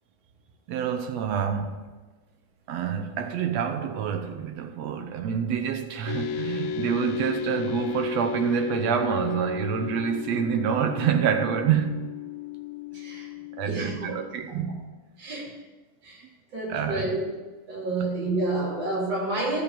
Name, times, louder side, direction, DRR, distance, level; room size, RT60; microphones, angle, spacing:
voice 1, 0.7-1.9 2.7-11.9 13.6-14.8 16.7-17.1 18.0-18.1, right 8 dB, 70° right, 2.0 m, -27 dB
sound 1, 6.1-14.3, left 7 dB, 75° left, 1.9 m, -34 dB
voice 2, 12.9-13.3 13.6-14.1 14.5-14.7 15.2-15.5 16.0-16.2 16.5-17.2 17.7-19.6, right 2 dB, 40° right, 3.7 m, -29 dB
12.5 x 6.0 x 9.1 m
omnidirectional pair, 3.3 m